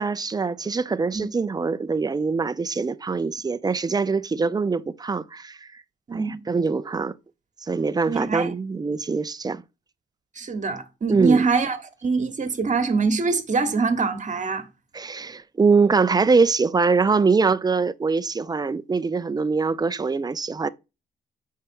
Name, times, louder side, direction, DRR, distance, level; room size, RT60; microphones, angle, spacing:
voice 1, 0.0-5.8 6.1-7.1 7.6-9.6 11.1-11.4 14.9-20.7, right 4 dB, 20° right, 0.5 m, -23 dB
voice 2, 6.1-6.4 8.1-8.5 10.4-14.7, right 4 dB, 45° right, 1.3 m, -24 dB
4.8 x 4.6 x 4.6 m
supercardioid pair, 65°, 18 cm